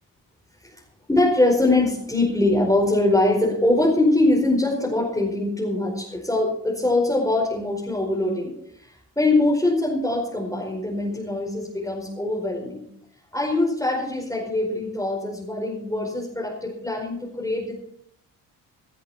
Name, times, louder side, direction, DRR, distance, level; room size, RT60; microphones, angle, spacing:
voice 1, 1.1-12.8 13.3-17.7, left 2 dB, 5° left, -3 dB, 5.0 m, -23 dB
18.0 x 13.0 x 4.4 m, 0.70 s
hypercardioid pair, 45°, 44 cm